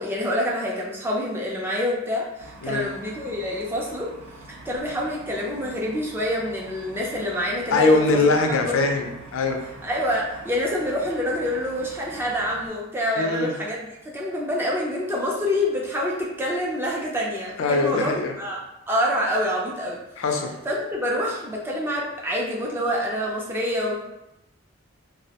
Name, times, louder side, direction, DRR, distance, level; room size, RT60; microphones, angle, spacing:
voice 1, 0.0-4.1 4.5-8.3 8.7-8.9 9.8-18.6 18.9-20.0 20.7-24.0, equal, 10° right, -3 dB, 0.3 m, -27 dB
sound 1, 2.4-12.7, right 2 dB, 80° right, 0.4 m, -45 dB
voice 2, 7.7-9.6 13.2-13.5 17.6-18.3 20.2-20.5, left 3 dB, 80° left, 3 dB, 0.4 m, -21 dB
2.3 x 2.0 x 2.8 m, 0.91 s
head